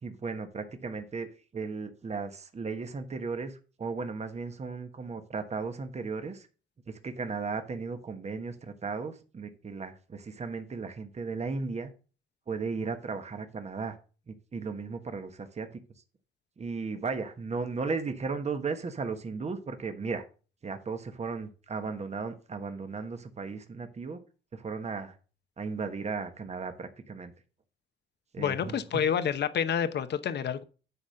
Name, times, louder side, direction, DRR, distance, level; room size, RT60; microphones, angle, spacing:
voice 1, 0.0-6.5 6.9-11.9 12.5-13.9 14.3-15.8 16.6-20.3 20.6-24.2 24.5-25.2 25.6-27.3 28.3-29.0, right 4 dB, 35° right, 1.3 m, -36 dB
voice 2, 28.4-30.6, left 8 dB, 60° left, 1.0 m, -28 dB
9.8 x 4.2 x 6.4 m
cardioid pair, 90°, 20 cm